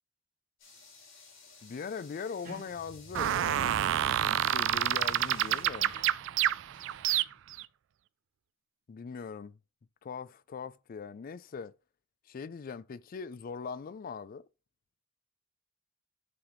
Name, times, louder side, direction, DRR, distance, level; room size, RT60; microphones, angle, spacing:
sound 1, 0.6-5.6, left 4 dB, 80° left, 3.2 m, -55 dB
voice 1, 1.6-3.8 4.1-6.0 8.9-9.6 10.0-11.8 12.3-14.5, left 5 dB, 45° left, 0.4 m, -41 dB
sound 2, 2.2-7.5, right 1 dB, 40° right, 1.6 m, -50 dB
sound 3, 3.1-7.6, right 11 dB, 65° right, 0.3 m, -28 dB
9.7 x 3.8 x 3.4 m
head